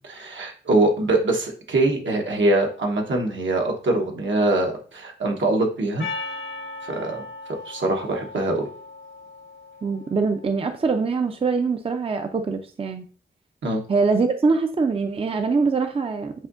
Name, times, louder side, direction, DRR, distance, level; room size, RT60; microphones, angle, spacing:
voice 1, 0.0-6.0 6.8-7.2 7.7-8.7 13.6-13.8, right 2 dB, 80° right, 2 dB, 1.1 m, -23 dB
Percussion, 6.0-10.5, left 3 dB, 75° left, 1.3 m, -37 dB
voice 2, 9.8-13.1 13.9-16.3, right 4 dB, 30° right, 6 dB, 0.4 m, -23 dB
7.3 x 2.7 x 2.5 m, 0.40 s
wide cardioid pair, 100°, 20 cm